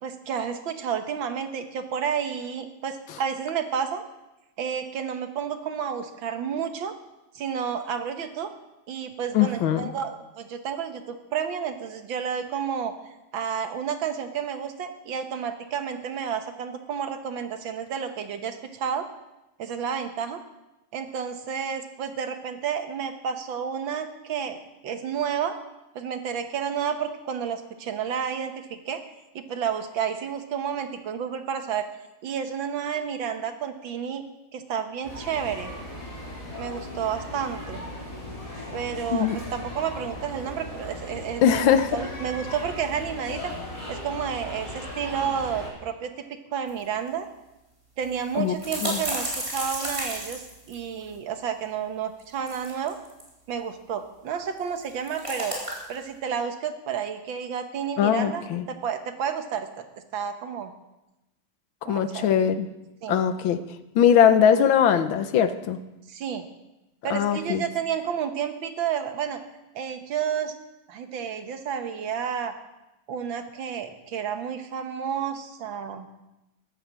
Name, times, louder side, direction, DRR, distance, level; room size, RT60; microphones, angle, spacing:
voice 1, 0.0-4.0 4.6-6.9 7.4-8.5 8.9-12.9 13.3-19.1 19.6-20.4 20.9-24.6 24.8-25.5 26.0-29.0 29.4-31.9 32.2-34.2 34.5-35.7 36.6-37.9 38.7-43.5 43.9-47.3 48.0-53.0 53.5-55.5 55.9-59.7 60.1-60.7 61.9-62.3 63.0-63.2 66.1-66.5 67.0-69.4 69.8-70.5 70.9-72.5 73.1-76.1, right 7 dB, 80° right, 8 dB, 1.9 m, -31 dB
voice 2, 9.3-9.9 39.1-39.4 41.4-42.0 48.4-48.6 48.8-49.0 58.0-58.7 61.8-62.7 63.1-63.6 64.0-65.8 67.1-67.6, left 8 dB, 85° left, 11 dB, 1.7 m, -21 dB
sound 1, 35.0-45.7, left 1 dB, 15° left, 5.0 m, -38 dB
sound 2, 46.7-46.8 47.1-47.2 48.0-51.2 52.2-53.3 54.6-56.0, equal, 15° right, 3.9 m, -32 dB
14.0 x 11.0 x 7.4 m, 0.98 s
omnidirectional pair, 2.1 m